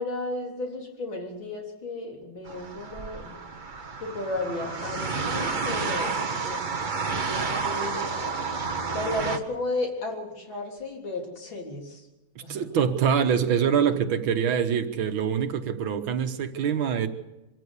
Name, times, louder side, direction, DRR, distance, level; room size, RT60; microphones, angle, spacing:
voice 1, 0.0-3.4 4.0-6.6 6.9-8.3 8.9-12.0 12.4-12.6, left 2 dB, 65° left, 1 dB, 4.3 m, -34 dB
sound 1, 2.4-9.4, right 4 dB, 30° right, 1.0 m, -30 dB
voice 2, 12.4-17.1, right 7 dB, 75° right, 8 dB, 2.0 m, -25 dB
24.5 x 14.0 x 8.2 m, 1.0 s
omnidirectional pair, 2.3 m